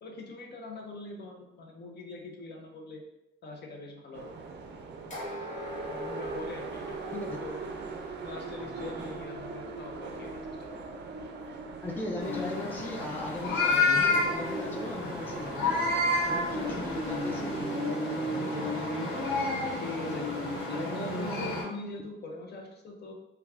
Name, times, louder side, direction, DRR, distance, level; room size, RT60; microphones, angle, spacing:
voice 1, 0.0-3.0 3.4-4.3 5.8-7.0 7.4-7.6 8.2-10.9 16.5-16.8 19.8-23.1, left 2 dB, 55° left, 1 dB, 0.6 m, -42 dB
sound 1, 4.1-17.7, right 4 dB, 60° right, 0.4 m, -41 dB
sound 2, 5.1-7.8 13.7-17.7, left 1 dB, 35° left, 1.0 m, -44 dB
voice 2, 11.8-16.0 16.3-19.2, left 1 dB, 10° left, -1 dB, 0.4 m, -38 dB
sound 3, 12.2-21.6, left 2 dB, 75° left, 1.3 m, -30 dB
2.3 x 2.2 x 3.3 m, 0.89 s
cardioid pair, 110°, 21 cm